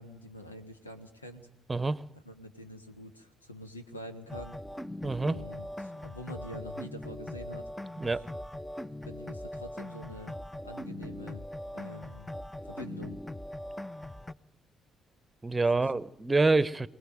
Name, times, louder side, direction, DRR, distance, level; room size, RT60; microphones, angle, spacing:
voice 1, 0.0-1.5 2.2-4.6 5.3-7.7 9.0-10.4 10.6-11.5 11.7-12.3 12.6-13.2 15.7-16.0, left 1 dB, 90° left, 9 dB, 1.5 m, -46 dB
voice 2, 1.7-2.0 5.0-5.4 8.0-8.3 15.4-16.9, right 3 dB, 20° right, 19 dB, 1.0 m, -26 dB
sound 1, 4.3-14.3, left 1 dB, 10° left, 0.8 m, -41 dB
25.0 x 19.0 x 7.7 m, 0.81 s
figure-of-eight pair, 45°, 0 cm